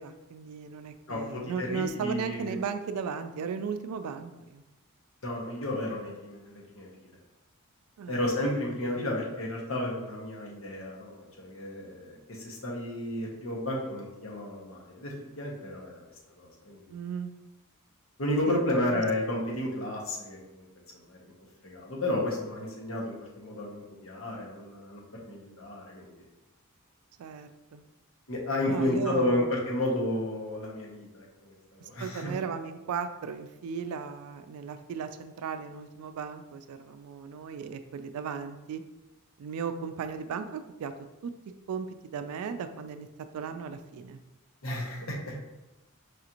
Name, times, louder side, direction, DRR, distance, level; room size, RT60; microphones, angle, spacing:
voice 1, 0.0-4.6 8.0-8.2 16.9-17.3 18.5-19.0 27.2-27.8 28.7-29.5 31.8-38.8 39.4-40.9 41.2-41.3 41.7-41.9 42.1-43.1 43.3-44.2, right 6 dB, 80° right, 10 dB, 0.3 m, -36 dB
voice 2, 1.1-2.6 5.2-7.1 8.1-17.0 18.2-20.6 20.9-21.3 21.6-26.2 28.3-32.3 44.6-45.4, left 1 dB, 65° left, -2 dB, 0.9 m, -32 dB
4.8 x 2.5 x 2.9 m, 1.0 s
head